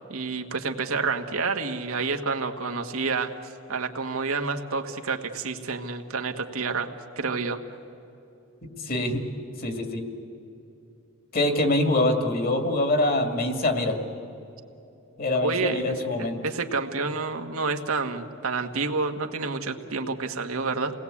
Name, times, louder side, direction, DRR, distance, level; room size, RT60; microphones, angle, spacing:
voice 1, 0.0-6.9 7.2-7.6 15.4-20.9, right 4 dB, 85° right, 5 dB, 1.5 m, -29 dB
voice 2, 8.6-9.2 9.6-10.0 11.3-14.0 15.2-16.4, left 2 dB, 45° left, 5 dB, 2.4 m, -24 dB
28.5 x 19.5 x 8.5 m, 2.9 s
head